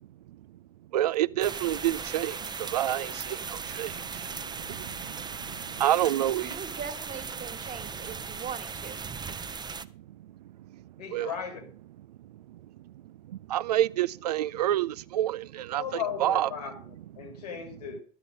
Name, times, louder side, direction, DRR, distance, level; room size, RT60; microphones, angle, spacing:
voice 1, 0.9-6.6 7.9-8.5 9.1-9.6 9.9-10.4 10.7-10.8 11.1-11.3 12.3-16.5 17.2-17.4, right 13 dB, 75° right, 0.5 m, -30 dB
sound 1, 1.4-9.9, right 5 dB, 20° right, 0.8 m, -38 dB
voice 2, 6.4-9.0, right 7 dB, 40° right, 1.9 m, -40 dB
voice 3, 11.0-11.7 15.7-18.0, left 7 dB, 75° left, 2.7 m, -36 dB
12.5 x 9.1 x 5.3 m
figure-of-eight pair, 60°, 20 cm